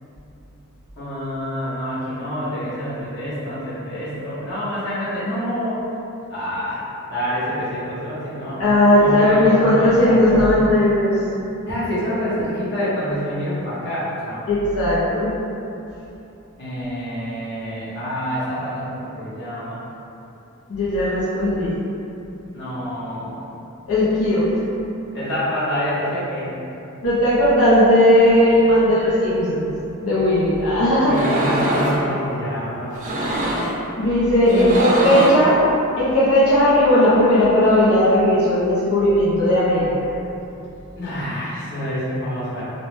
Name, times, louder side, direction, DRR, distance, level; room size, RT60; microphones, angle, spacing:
voice 1, 1.0-5.8 6.3-6.8 7.1-8.6 9.0-10.5 11.6-14.4 16.6-19.8 22.5-23.4 25.1-26.5 31.0-32.9 34.5-35.1 41.0-42.6, equal, 55° left, -11 dB, 1.0 m, -27 dB
voice 2, 8.6-11.1 14.5-15.3 20.7-21.7 23.9-24.5 27.0-29.7 30.0-31.1 33.2-33.6 34.0-35.6 36.0-39.9, left 1 dB, 80° left, -9 dB, 0.6 m, -17 dB
sound 1, 31.1-32.0 32.9-33.8 34.4-35.5, right 1 dB, 35° right, 0.4 m, -23 dB
2.7 x 2.1 x 3.0 m, 2.8 s
head